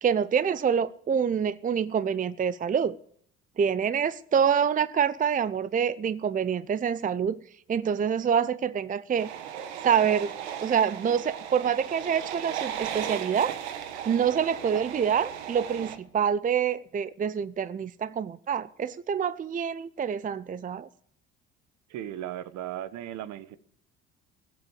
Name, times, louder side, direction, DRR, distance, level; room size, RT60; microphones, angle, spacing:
voice 1, 0.0-3.0 3.6-7.4 7.7-9.3 9.8-10.3 10.6-13.5 14.1-20.9, right 7 dB, 25° right, 0.6 m, -26 dB
sound 1, 9.2-16.0, right 9 dB, 85° right, 1.4 m, -36 dB
voice 2, 21.9-23.6, right 12 dB, 60° right, 1.2 m, -36 dB
16.0 x 8.1 x 8.6 m
hypercardioid pair, 70°, 33 cm